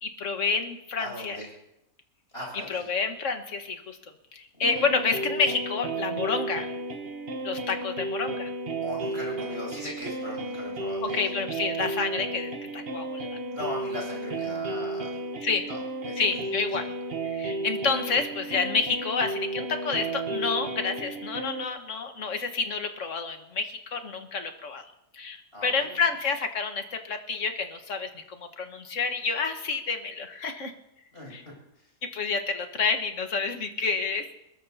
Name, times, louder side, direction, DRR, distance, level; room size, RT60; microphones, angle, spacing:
voice 1, 0.0-1.4 2.7-4.0 4.3-6.7 7.4-8.5 11.1-13.4 15.4-15.6 16.2-16.8 17.3-24.9 25.1-25.4 25.6-30.7 31.3-31.4 32.1-34.4, left 5 dB, 55° left, 6 dB, 1.7 m, -29 dB
voice 2, 1.0-1.5 2.3-2.9 4.5-4.9 8.8-11.4 13.5-15.2 15.7-16.6 25.5-26.1 31.1-31.9, left 1 dB, 40° left, -3 dB, 7.4 m, -39 dB
sound 1, 4.6-21.6, right 2 dB, 45° right, 1.2 m, -33 dB
22.5 x 21.0 x 2.8 m, 0.86 s
omnidirectional pair, 1.6 m